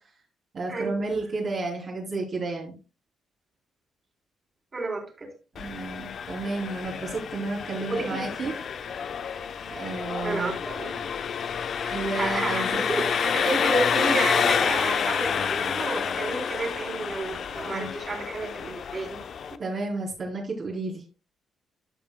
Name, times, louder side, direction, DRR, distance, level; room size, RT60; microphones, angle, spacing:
voice 1, 0.5-2.7 5.6-8.6 9.7-10.5 11.9-12.8 17.7-18.0 19.6-21.0, right 3 dB, 50° right, -4 dB, 3.4 m, -32 dB
voice 2, 4.7-5.3 7.9-8.4 10.2-11.0 11.8-19.2 19.5-19.6, right 2 dB, 35° right, 1 dB, 3.8 m, -31 dB
Engine, 5.5-19.6, left 7 dB, 55° left, 0.7 m, -29 dB
15.0 x 5.8 x 2.2 m, 0.30 s
cardioid pair, 90°, 0 cm